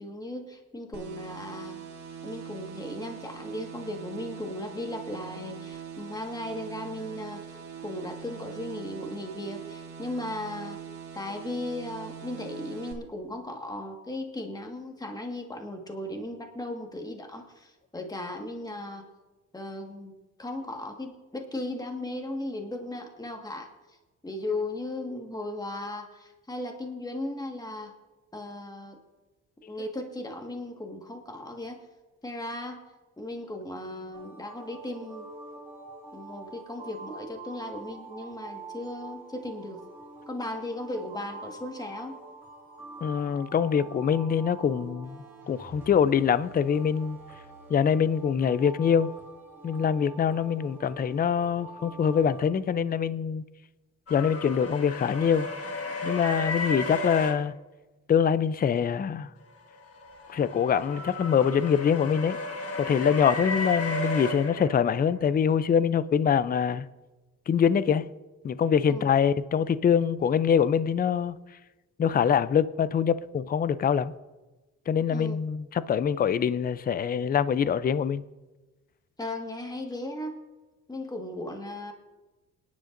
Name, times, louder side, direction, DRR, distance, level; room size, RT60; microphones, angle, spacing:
voice 1, 0.0-1.8 2.2-7.6 7.8-10.8 11.1-19.0 19.5-20.1 20.4-23.7 24.2-27.9 28.3-29.0 29.7-31.8 32.2-32.8 33.2-35.3 36.1-39.8 40.3-42.2 68.9-69.1 75.1-75.4 79.2-80.4 80.9-81.9, left 1 dB, 15° left, 1.6 m, -36 dB
sound 1, 0.9-12.9, right 8 dB, 65° right, 2.1 m, -42 dB
sound 2, 34.1-52.4, right 3 dB, 10° right, 3.4 m, -46 dB
voice 2, 43.0-45.2 45.5-47.2 47.7-49.1 49.6-53.4 54.1-55.5 56.0-57.5 58.1-59.3 60.3-62.4 62.7-66.9 67.5-68.0 68.4-71.4 72.0-74.1 74.9-78.2, left 7 dB, 30° left, 0.5 m, -24 dB
sound 3, 54.1-57.3 59.7-65.2, left 2 dB, 50° left, 1.5 m, -34 dB
28.0 x 10.5 x 2.6 m
cardioid pair, 90°, 30 cm